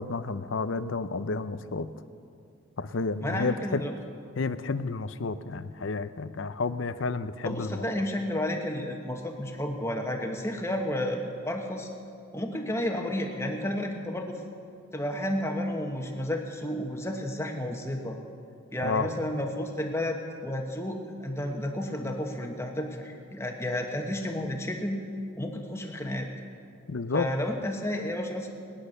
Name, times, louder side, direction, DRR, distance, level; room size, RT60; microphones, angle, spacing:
voice 1, 0.0-1.9 2.8-3.8 4.4-7.8 18.8-19.1 26.9-27.3, left 4 dB, 70° left, 12 dB, 0.6 m, -31 dB
voice 2, 3.2-3.9 7.4-11.9 12.3-14.4 14.9-18.2 18.7-25.0 25.4-26.3 27.1-28.6, left 1 dB, 15° left, 2 dB, 1.2 m, -31 dB
19.0 x 10.5 x 6.5 m, 2.4 s
head